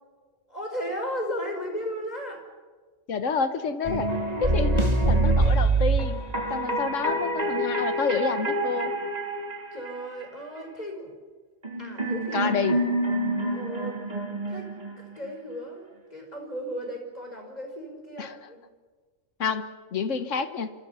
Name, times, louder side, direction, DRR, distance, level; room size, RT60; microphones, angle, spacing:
voice 1, 0.5-2.4 6.8-7.0 9.7-11.2 11.8-12.5 13.5-14.0 14.5-14.7 15.2-18.6, equal, 30° left, 2 dB, 5.3 m, -35 dB
voice 2, 3.1-4.1 4.4-6.2 6.5-8.9 12.3-12.8 18.2-18.4 19.4-20.7, left 5 dB, 75° left, 10 dB, 1.6 m, -28 dB
sound 1, 3.8-10.2 11.6-15.3, right 2 dB, 30° right, 2.8 m, -26 dB
26.5 x 26.5 x 5.8 m, 1.4 s
omnidirectional pair, 1.3 m